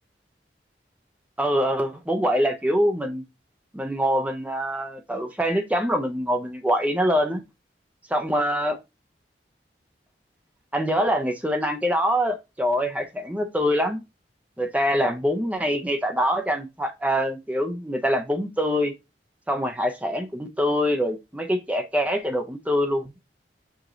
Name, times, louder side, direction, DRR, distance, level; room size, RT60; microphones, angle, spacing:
voice 1, 1.4-3.2 3.7-7.4 8.1-8.8 10.7-14.0 14.6-18.9 19.5-23.2, equal, 10° right, 0.6 m, -24 dB
4.8 x 2.8 x 3.8 m
head